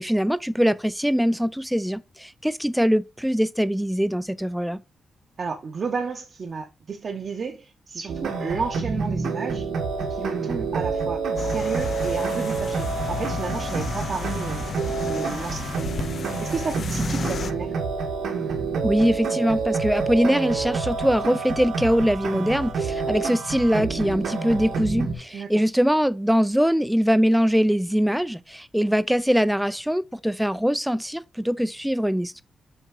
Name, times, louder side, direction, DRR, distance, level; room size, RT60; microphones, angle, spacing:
voice 1, 0.0-4.8 18.8-32.4, equal, ahead, 0.4 m, -22 dB
voice 2, 5.4-9.7 10.0-15.7 16.4-17.8 25.3-25.6, right 5 dB, 45° right, 0.8 m, -32 dB
sound 1, 8.1-25.1, right 4 dB, 85° right, 1.5 m, -28 dB
sound 2, 11.4-17.5, left 6 dB, 50° left, 0.5 m, -33 dB
6.5 x 3.5 x 4.8 m
wide cardioid pair, 140°, 0 cm